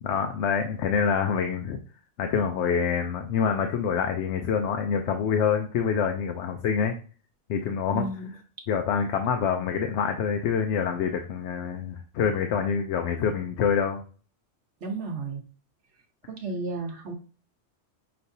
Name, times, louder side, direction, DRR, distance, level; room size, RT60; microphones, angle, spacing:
voice 1, 0.0-1.8 2.2-6.9 7.5-8.1 8.7-14.0, left 7 dB, 75° left, 5 dB, 0.9 m, -26 dB
voice 2, 7.9-8.3 14.8-15.4 16.3-17.1, right 3 dB, 75° right, 3 dB, 1.3 m, -32 dB
5.9 x 3.2 x 2.6 m, 0.38 s
omnidirectional pair, 1.2 m